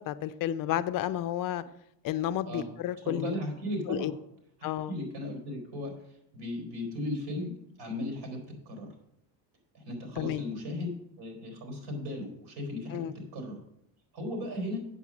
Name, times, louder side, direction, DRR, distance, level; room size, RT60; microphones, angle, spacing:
voice 1, 0.1-1.6 2.0-3.4 3.9-4.1 4.6-4.9 10.2-10.4 12.9-13.1, left 12 dB, 50° left, 13 dB, 0.5 m, -31 dB
voice 2, 3.0-4.1 4.6-5.9 6.3-8.9 9.7-13.6 14.1-14.8, left 1 dB, 65° right, 3 dB, 3.7 m, -36 dB
8.3 x 7.2 x 6.0 m, 0.78 s
cardioid pair, 125°, 43 cm